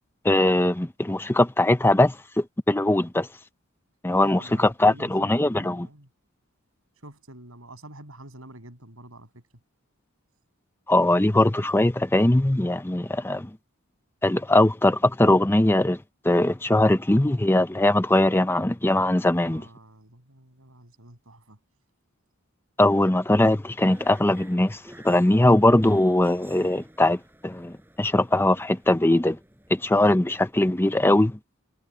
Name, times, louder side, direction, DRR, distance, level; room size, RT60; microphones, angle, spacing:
voice 1, 0.2-3.3 4.0-5.9 10.9-13.5 14.2-16.0 16.2-19.6 22.8-29.4 29.7-31.4, left 1 dB, 10° left, 0.7 m, -21 dB
voice 2, 4.2-6.1 7.0-9.4 19.5-21.6, right 1 dB, 75° right, 7.2 m, -47 dB
sound 1, 23.9-31.0, right 1 dB, 10° right, 6.7 m, -50 dB
head